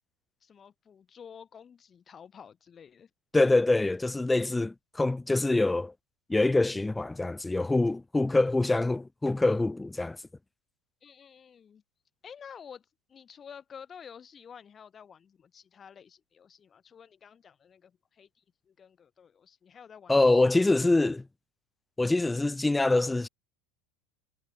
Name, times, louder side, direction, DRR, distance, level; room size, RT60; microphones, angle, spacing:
voice 1, 0.4-3.1 11.0-11.8 12.2-20.7, left 7 dB, 30° left, 5.1 m, -50 dB
voice 2, 3.3-5.9 6.3-10.2 20.1-21.2 22.0-23.3, left 2 dB, 10° left, 0.7 m, -25 dB
supercardioid pair, 110°, 0 cm